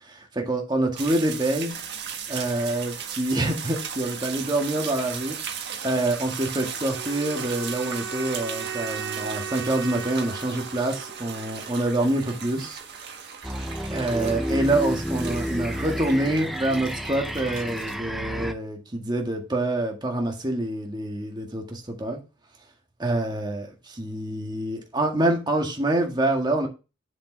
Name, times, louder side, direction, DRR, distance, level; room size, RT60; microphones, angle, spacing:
voice 1, 0.1-1.8 2.3-5.4 5.8-12.8 13.9-22.2 23.0-26.7, right 1 dB, 25° right, 1.8 m, -26 dB
sound 1, 1.0-18.0, right 7 dB, 60° right, 1.6 m, -37 dB
sound 2, 6.9-11.9, right 7 dB, 75° right, 2.3 m, -37 dB
sound 3, 13.4-18.5, equal, ahead, 0.5 m, -30 dB
7.5 x 7.1 x 3.3 m
head